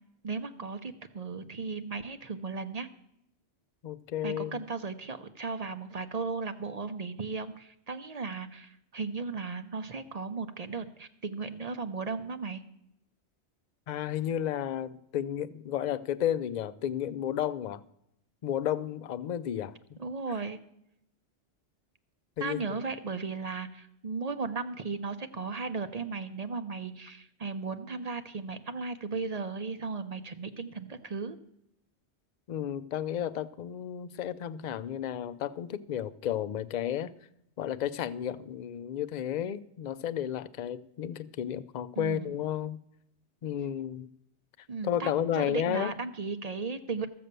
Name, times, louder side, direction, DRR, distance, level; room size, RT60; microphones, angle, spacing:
voice 1, 0.2-2.9 4.2-12.6 20.0-20.6 22.4-31.4 42.0-42.4 44.7-47.1, right 4 dB, 45° right, 0.6 m, -36 dB
voice 2, 3.8-4.6 13.9-17.8 18.4-20.0 22.4-22.6 32.5-37.1 37.6-42.8 43.4-44.1 44.8-45.9, left 10 dB, 55° left, 0.5 m, -32 dB
13.5 x 7.6 x 6.7 m
omnidirectional pair, 1.1 m